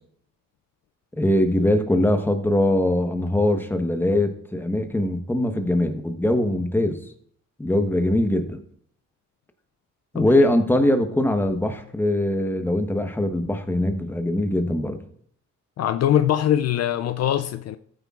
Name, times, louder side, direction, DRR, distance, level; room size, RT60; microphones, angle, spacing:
voice 1, 1.2-7.0 7.6-8.6 10.1-15.0, left 1 dB, 5° left, 1.2 m, -22 dB
voice 2, 15.8-17.8, left 10 dB, 60° left, 0.5 m, -22 dB
14.5 x 9.5 x 2.5 m
cardioid pair, 90°, 30 cm